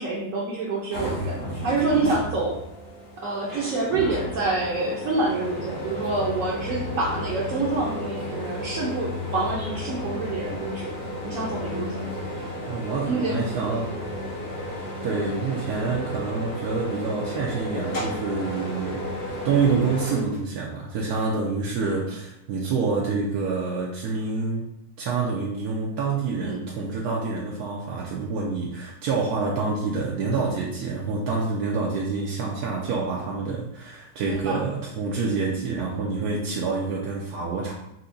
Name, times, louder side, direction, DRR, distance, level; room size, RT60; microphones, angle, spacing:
voice 1, 0.0-1.4 1.6-2.6 3.2-10.9 11.2-12.0 13.0-13.4 26.4-26.6 34.2-34.6, right 3 dB, 65° right, -5 dB, 1.0 m, -27 dB
sound 1, 0.9-20.2, equal, 80° left, 2.3 m, -33 dB
voice 2, 12.7-13.9 15.0-19.0 19.4-24.7 25.0-37.7, right 4 dB, 80° right, -3 dB, 1.2 m, -27 dB
5.7 x 2.8 x 2.6 m, 0.80 s
omnidirectional pair, 1.6 m